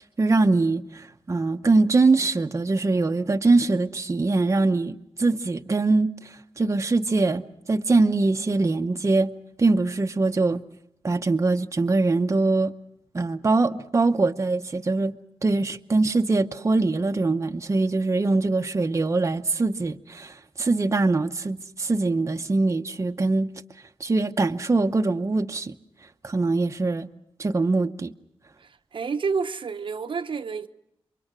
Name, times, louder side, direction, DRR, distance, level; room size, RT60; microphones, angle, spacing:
voice 1, 0.0-7.4 7.7-9.3 9.6-10.6 11.0-12.7 13.1-15.1 15.4-23.5 24.0-25.7 26.2-27.1 27.4-28.1, right 3 dB, 30° right, 0.8 m, -23 dB
voice 2, 28.6-30.7, right 5 dB, 60° right, 0.9 m, -29 dB
28.0 x 23.5 x 6.1 m
cardioid pair, 70°, 10 cm